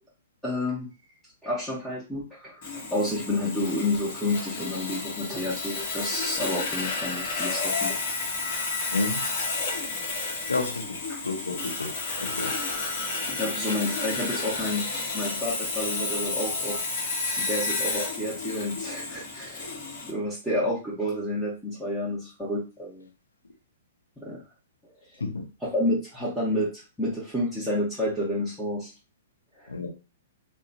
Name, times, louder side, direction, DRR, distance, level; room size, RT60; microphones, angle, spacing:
voice 1, 0.4-0.9 1.4-8.0 11.1-11.2 13.2-16.8 17.4-19.7 20.1-23.1 24.2-24.4 25.6-28.9 29.6-29.7, left 1 dB, ahead, 0.9 m, -30 dB
Sawing, 2.6-20.1, left 3 dB, 50° left, 1.0 m, -31 dB
voice 2, 8.9-9.3 10.5-11.0 11.2-11.9 12.2-12.5 25.2-25.4 29.7-29.9, left 3 dB, 80° left, 0.8 m, -30 dB
2.9 x 2.1 x 2.6 m
figure-of-eight pair, 110°, 0 cm